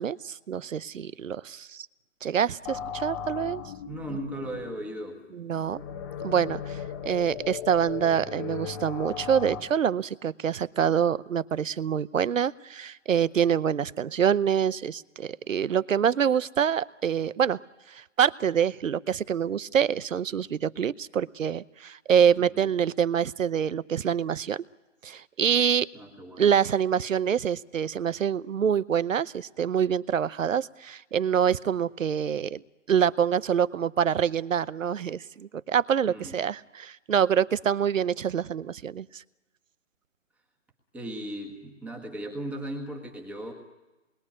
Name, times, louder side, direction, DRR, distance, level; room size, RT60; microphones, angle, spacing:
voice 1, 0.0-1.9 2.2-3.6 5.3-5.8 6.2-17.6 17.9-24.6 25.0-25.9 26.4-32.6 32.9-39.2, right 8 dB, 75° right, 18 dB, 0.9 m, -26 dB
sound 1, 2.7-9.6, left 8 dB, 15° left, 1.1 m, -37 dB
voice 2, 3.8-5.2 22.5-22.7 25.9-26.5 36.1-36.3 40.9-43.5, right 1 dB, 5° right, 1 dB, 1.6 m, -37 dB
27.0 x 22.0 x 9.8 m, 1.2 s
hypercardioid pair, 160°, 39 cm